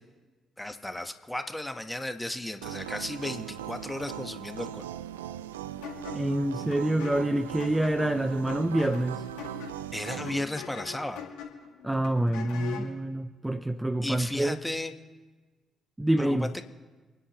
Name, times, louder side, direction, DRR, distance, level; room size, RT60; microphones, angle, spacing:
voice 1, 0.6-4.9 9.9-11.3 14.0-14.9 16.2-16.6, left 1 dB, 10° left, 7 dB, 1.4 m, -34 dB
sound 1, 2.6-10.4, right 11 dB, 85° right, 0.3 m, -39 dB
sound 2, 5.8-13.0, left 8 dB, 80° left, 2.4 m, -42 dB
voice 2, 6.1-9.3 11.8-14.6 16.0-16.5, right 1 dB, 15° right, 10 dB, 0.7 m, -27 dB
29.5 x 10.0 x 3.2 m, 1.3 s
hypercardioid pair, 45°, 0 cm